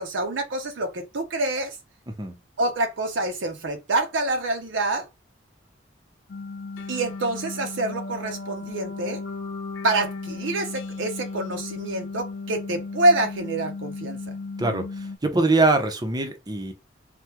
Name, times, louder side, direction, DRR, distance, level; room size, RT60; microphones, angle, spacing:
voice 1, 0.0-1.8 2.6-5.1 6.9-9.2 9.8-14.2, right 2 dB, 70° right, 0.7 m, -26 dB
voice 2, 2.1-2.4 14.6-16.7, right 2 dB, 20° right, 0.6 m, -23 dB
sound 1, 6.3-15.2, left 3 dB, 55° left, 0.3 m, -36 dB
sound 2, 6.7-13.6, left 3 dB, 85° left, 0.9 m, -44 dB
3.3 x 2.2 x 2.9 m
head